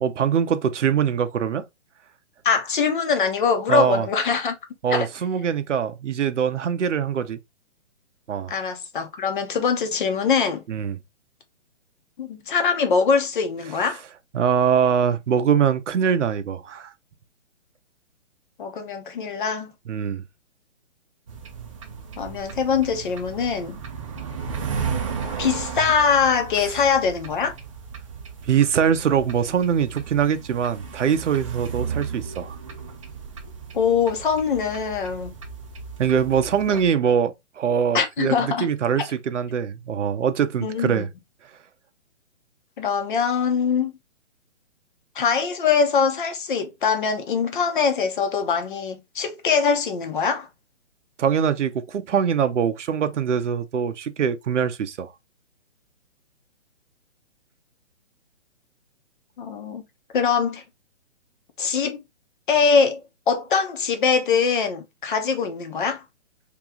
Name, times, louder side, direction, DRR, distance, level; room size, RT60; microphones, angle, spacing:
voice 1, 0.0-1.6 3.7-4.1 4.8-7.4 8.3-8.5 10.7-11.0 14.3-16.9 19.9-20.2 28.5-32.6 36.0-41.1 51.2-55.1, right 7 dB, 80° right, 0.8 m, -23 dB
voice 2, 2.4-4.5 4.9-5.1 8.5-10.6 12.2-14.0 18.6-19.7 22.2-23.8 25.4-27.5 33.7-35.3 36.7-36.8 37.9-38.7 40.6-41.1 42.8-43.9 45.1-50.5 59.4-59.8 60.1-60.6 61.6-62.0 62.5-66.0, left 6 dB, 45° left, 0.9 m, -23 dB
sound 1, 21.3-36.9, right 6 dB, 30° right, 0.5 m, -35 dB
3.0 x 3.0 x 3.6 m
hypercardioid pair, 160°, 36 cm